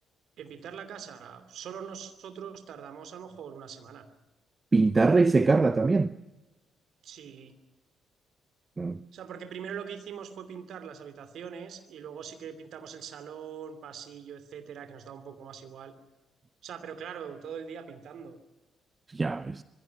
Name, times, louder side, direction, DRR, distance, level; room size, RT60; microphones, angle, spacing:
voice 1, 0.4-4.0 7.0-7.5 9.1-15.9 16.6-18.4, right 7 dB, 55° right, 2.8 m, -42 dB
voice 2, 4.7-6.1 8.8-9.0 19.1-19.6, right 3 dB, 25° right, 0.7 m, -22 dB
25.5 x 21.5 x 6.0 m
figure-of-eight pair, 45°, 0 cm